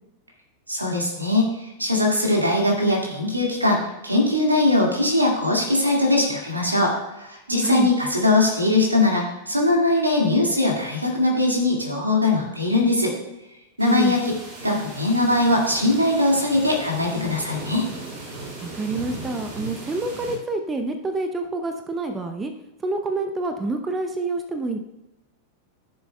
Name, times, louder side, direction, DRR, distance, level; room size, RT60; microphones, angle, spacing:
voice 1, 0.7-13.1 13.8-14.3 14.6-17.9, left 2 dB, 80° right, 0 dB, 2.0 m, -21 dB
sound 1, 13.8-20.4, right 2 dB, 45° right, 2.5 m, -37 dB
voice 2, 18.6-22.5 22.8-24.8, right 2 dB, 15° right, 6 dB, 0.7 m, -27 dB
14.5 x 6.9 x 2.3 m, 0.99 s
figure-of-eight pair, 90°, 0 cm